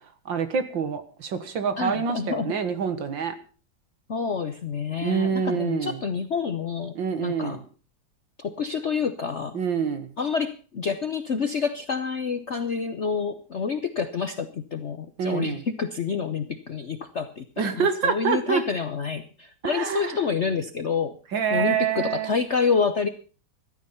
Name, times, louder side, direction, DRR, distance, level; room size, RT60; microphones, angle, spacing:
voice 1, 0.3-3.3 5.0-6.0 7.0-7.6 9.5-10.1 15.2-15.6 17.6-18.6 19.6-20.2 21.3-22.3, right 6 dB, 65° right, 10 dB, 2.3 m, -26 dB
voice 2, 1.8-2.5 4.1-7.6 8.4-9.6 10.2-17.4 17.8-21.2 21.5-23.1, left 5 dB, 50° left, 10 dB, 0.8 m, -28 dB
14.5 x 12.0 x 5.7 m, 0.38 s
omnidirectional pair, 2.2 m